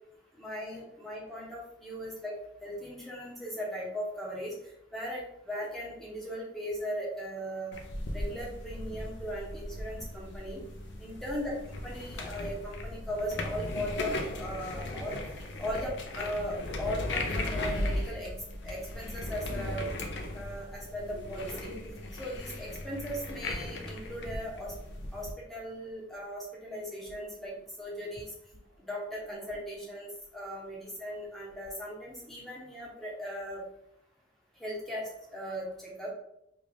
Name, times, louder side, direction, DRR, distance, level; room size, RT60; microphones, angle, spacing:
voice 1, 0.3-2.3 2.6-4.5 4.9-7.8 8.1-10.6 11.0-11.5 11.8-15.2 15.6-18.3 18.6-19.9 20.3-21.7 22.2-24.7 25.1-28.3 28.8-33.6 34.6-36.1, equal, ahead, -4 dB, 0.9 m, -38 dB
sound 1, 7.7-25.3, left 1 dB, 65° left, 0.5 m, -37 dB
sound 2, 18.8-19.2 20.6-31.9, equal, 75° right, 1.1 m, -54 dB
3.7 x 2.4 x 3.3 m, 0.78 s
head